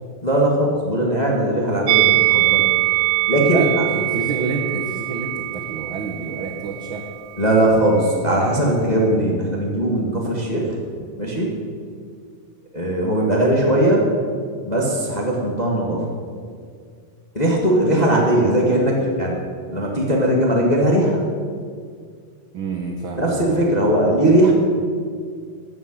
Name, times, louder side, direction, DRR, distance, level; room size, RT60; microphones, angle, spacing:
voice 1, 0.2-2.6 3.3-3.6 7.4-10.7 11.2-11.5 12.7-14.0 14.6-16.1 17.3-19.4 19.7-21.2 23.1-24.5, right 1 dB, 20° left, -2 dB, 1.3 m, -19 dB
Musical instrument, 1.9-7.1 7.4-7.6, right 22 dB, 90° right, 2.5 m, -22 dB
voice 2, 3.5-7.1 22.5-23.6, right 3 dB, 65° right, 2 dB, 1.2 m, -28 dB
13.0 x 9.2 x 9.0 m, 2.1 s
omnidirectional pair, 4.0 m